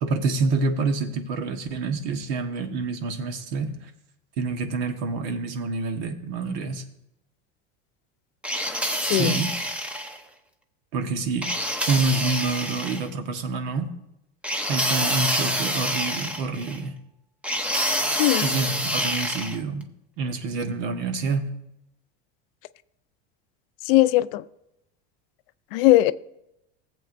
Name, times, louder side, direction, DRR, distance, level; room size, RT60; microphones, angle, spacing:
voice 1, 0.0-3.9 4.4-6.8 9.1-9.5 10.9-11.5 11.9-13.9 14.7-17.0 18.4-19.9 20.2-21.5, right 4 dB, 75° right, 1.4 m, -27 dB
sound 1, 8.4-10.2 11.4-13.1 14.4-16.8 17.4-19.6, equal, 5° right, 0.7 m, -27 dB
voice 2, 23.9-24.4 25.7-26.1, left 16 dB, 70° left, 0.5 m, -19 dB
18.0 x 7.7 x 2.6 m
supercardioid pair, 135°, 29 cm